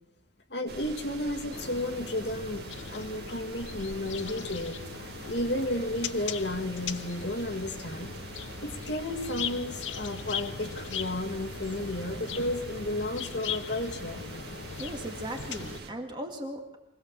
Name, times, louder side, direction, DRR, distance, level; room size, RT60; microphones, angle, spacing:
voice 1, 0.5-4.8 5.2-8.1 8.6-14.2, left 1 dB, 65° left, 5 dB, 1.8 m, -33 dB
sound 1, 0.7-15.9, right 3 dB, 55° right, 2.0 m, -44 dB
sound 2, 1.5-15.8, left 6 dB, 85° left, 0.9 m, -39 dB
voice 2, 14.8-16.8, right 1 dB, 25° right, 2 dB, 2.3 m, -37 dB
24.5 x 17.0 x 7.4 m, 0.92 s
head